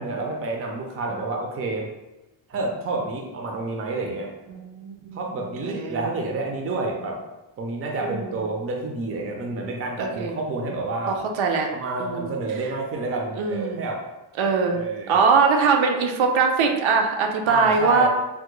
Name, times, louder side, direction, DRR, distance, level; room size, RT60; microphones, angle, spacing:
voice 1, 0.0-1.9 2.5-4.3 5.1-7.2 7.6-11.2 11.7-14.0 14.7-15.2 17.5-18.1, right 2 dB, 30° right, 1 dB, 0.4 m, -29 dB
voice 2, 4.5-5.2 5.6-6.1 8.0-8.4 10.0-10.3 11.1-11.7 12.0-12.3 13.4-13.8 14.4-18.1, right 5 dB, 80° right, 3 dB, 0.6 m, -22 dB
3.4 x 2.1 x 3.0 m, 1.0 s
wide cardioid pair, 165°, 46 cm